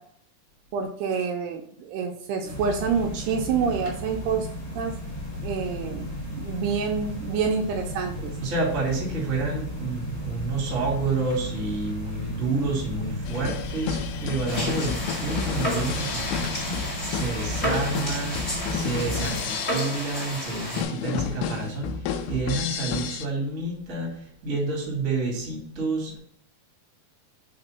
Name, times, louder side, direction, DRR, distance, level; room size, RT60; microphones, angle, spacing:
voice 1, 0.7-4.5 4.8-4.9 5.4-8.3, right 6 dB, 80° right, 2 dB, 2.5 m, -27 dB
sound 1, 2.5-19.4, left 1 dB, 45° left, 3.0 m, -35 dB
voice 2, 8.2-16.8 17.1-26.2, right 3 dB, 30° right, -3 dB, 1.7 m, -29 dB
sound 2, 13.3-23.3, left 7 dB, 85° left, 2.7 m, -31 dB
sound 3, 14.5-20.8, equal, 20° left, 1.7 m, -32 dB
5.9 x 3.9 x 5.7 m, 0.66 s
omnidirectional pair, 4.8 m